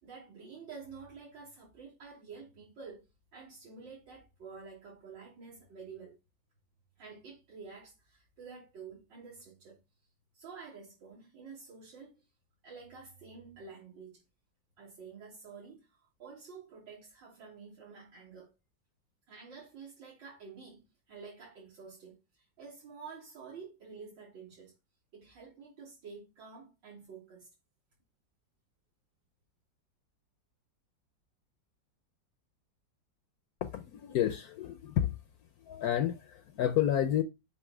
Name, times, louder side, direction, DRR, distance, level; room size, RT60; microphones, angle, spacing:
voice 1, 0.0-3.0 3.3-6.2 7.0-9.8 10.3-12.2 12.6-14.2 14.8-18.5 19.3-24.7 25.1-27.5, right 5 dB, 75° right, 3.8 m, -49 dB
voice 2, 33.6-35.2 35.6-37.2, left 11 dB, 70° left, 0.9 m, -30 dB
8.2 x 2.8 x 5.9 m
omnidirectional pair, 2.0 m